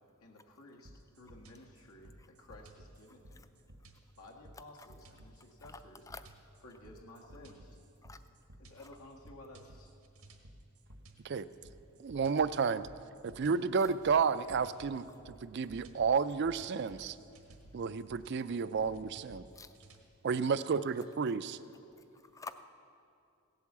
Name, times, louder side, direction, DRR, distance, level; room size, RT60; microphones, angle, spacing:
voice 1, 0.2-3.5 4.1-6.0 6.6-7.8 8.6-9.9 20.7-20.9, left 1 dB, 90° left, -1 dB, 1.8 m, -54 dB
sound 1, 0.9-20.0, right 1 dB, 90° right, 1.5 m, -56 dB
voice 2, 3.7-4.1 4.7-4.9 5.6-5.8 6.1-6.2 7.2-7.3 8.0-8.2 8.8-8.9 13.8-13.9 15.1-15.2 19.5-19.7 21.2-21.3 21.9-22.6, left 4 dB, 15° left, 11 dB, 0.4 m, -50 dB
voice 3, 12.0-12.9 13.2-17.2 17.7-19.4 20.2-21.6, right 5 dB, 50° right, 14 dB, 0.4 m, -31 dB
16.5 x 8.3 x 7.3 m, 2.6 s
head